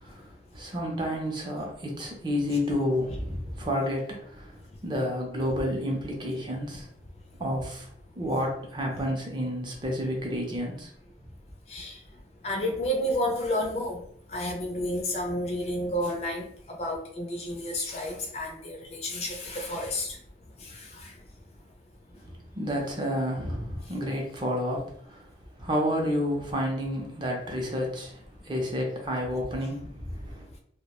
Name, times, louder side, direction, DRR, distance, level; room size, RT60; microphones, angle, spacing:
voice 1, 0.0-4.5 4.8-6.9 7.4-7.9 8.2-10.9 22.2-25.2 25.6-28.2 28.4-30.5, equal, 25° right, 0 dB, 0.5 m, -30 dB
voice 2, 11.7-12.0 12.4-14.0 14.3-20.2 20.6-21.1, left 1 dB, 35° left, 1 dB, 0.4 m, -31 dB
2.2 x 2.1 x 2.9 m, 0.66 s
head